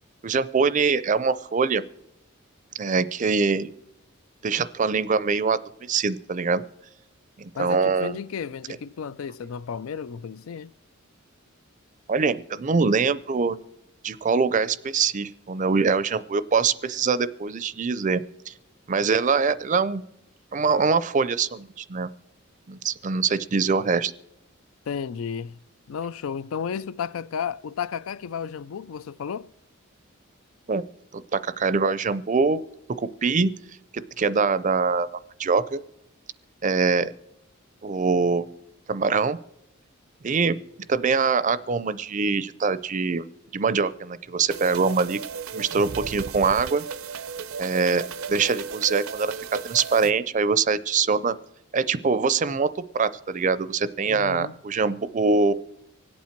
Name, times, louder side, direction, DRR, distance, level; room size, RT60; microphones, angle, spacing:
voice 1, 0.2-1.8 2.8-3.7 4.4-6.6 7.4-8.2 12.1-13.6 14.0-18.5 18.9-20.0 20.5-22.1 22.7-24.1 30.7-30.8 31.1-32.6 33.0-33.5 33.9-35.1 35.4-35.8 36.6-37.1 37.8-38.5 38.9-39.4 40.2-40.6 40.9-43.2 43.5-45.2 45.5-46.8 47.6-49.3 49.6-51.3 51.7-52.7 52.9-55.5, right 4 dB, 35° right, 0.5 m, -23 dB
voice 2, 7.5-10.7 24.9-25.6 25.9-29.5 54.1-54.5, left 7 dB, 80° left, 0.4 m, -33 dB
sound 1, 44.5-50.1, right 5 dB, 90° right, 0.6 m, -35 dB
25.0 x 8.5 x 4.5 m
head